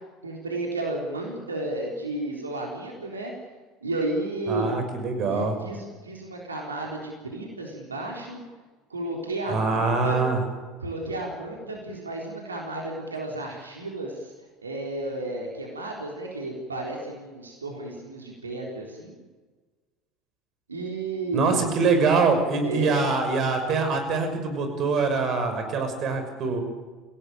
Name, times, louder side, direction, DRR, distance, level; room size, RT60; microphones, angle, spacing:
voice 1, 0.2-3.3 3.8-4.7 5.3-8.4 8.9-10.2 10.8-14.3 14.6-19.2 20.7-21.6 22.6-23.0, right 2 dB, 85° right, -1 dB, 3.8 m, -32 dB
voice 2, 4.5-5.6 9.5-10.4 21.3-26.6, right 4 dB, 45° right, 6 dB, 6.1 m, -24 dB
26.0 x 17.5 x 9.1 m, 1.4 s
figure-of-eight pair, 70°, 0 cm